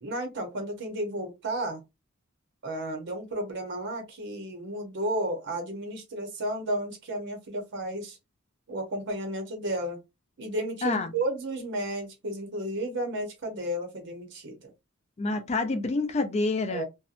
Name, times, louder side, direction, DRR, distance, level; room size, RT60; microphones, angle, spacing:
voice 1, 0.0-1.8 2.6-8.2 8.7-10.0 10.4-14.7 16.7-16.8, right 1 dB, 60° right, 0.7 m, -33 dB
voice 2, 10.8-11.1 15.2-16.8, left 3 dB, 30° left, 0.4 m, -27 dB
2.7 x 2.1 x 2.4 m
head